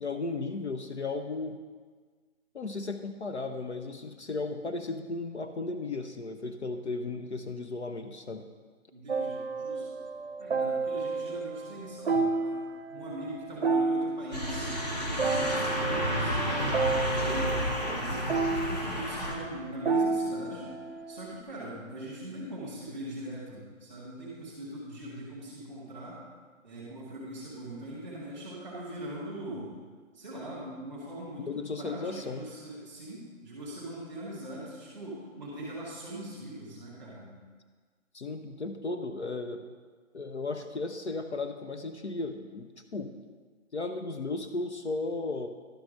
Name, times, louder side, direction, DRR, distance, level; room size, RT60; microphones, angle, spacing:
voice 1, 0.0-1.6 2.5-8.5 31.5-32.4 38.1-39.7 40.1-43.1 43.7-45.5, left 3 dB, 55° left, 6 dB, 0.7 m, -35 dB
voice 2, 8.9-9.9 10.4-12.6 12.9-14.7 15.0-16.8 17.1-20.7 21.1-26.2 26.6-29.7 30.1-37.3, right 1 dB, ahead, -8 dB, 1.2 m, -41 dB
sound 1, 9.1-21.4, right 4 dB, 55° right, 0.6 m, -31 dB
sound 2, 14.3-19.4, equal, 30° left, 1.1 m, -31 dB
11.5 x 4.8 x 6.3 m, 1.5 s
hypercardioid pair, 180°, 40 cm